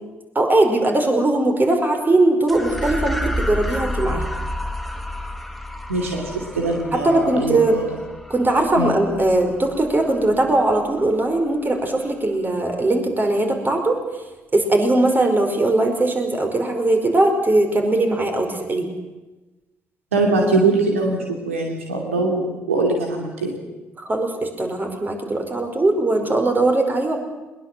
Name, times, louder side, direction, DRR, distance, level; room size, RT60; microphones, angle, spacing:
voice 1, 0.3-4.3 6.9-7.8 8.3-14.0 14.5-18.9 24.0-27.2, right 2 dB, 30° right, 4 dB, 5.1 m, -20 dB
sound 1, 2.5-11.1, left 1 dB, ahead, 2.1 m, -30 dB
voice 2, 5.9-7.8 8.8-8.9 20.1-23.5, right 2 dB, 85° right, 1 dB, 2.6 m, -22 dB
21.0 x 21.0 x 7.6 m, 1.1 s
figure-of-eight pair, 45°, 7 cm